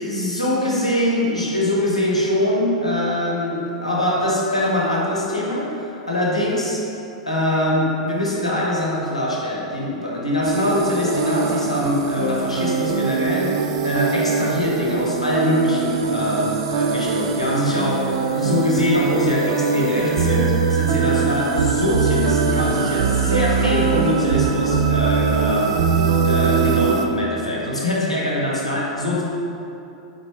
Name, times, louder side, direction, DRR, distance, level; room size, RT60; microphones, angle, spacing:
voice 1, 0.0-5.8 6.1-6.9 7.3-13.6 13.8-25.8 26.2-29.2, left 1 dB, 90° left, -4 dB, 0.8 m, -23 dB
sound 1, 10.4-27.1, right 5 dB, 60° right, 0.4 m, -21 dB
4.1 x 4.0 x 3.2 m, 2.7 s
figure-of-eight pair, 95°, 3 cm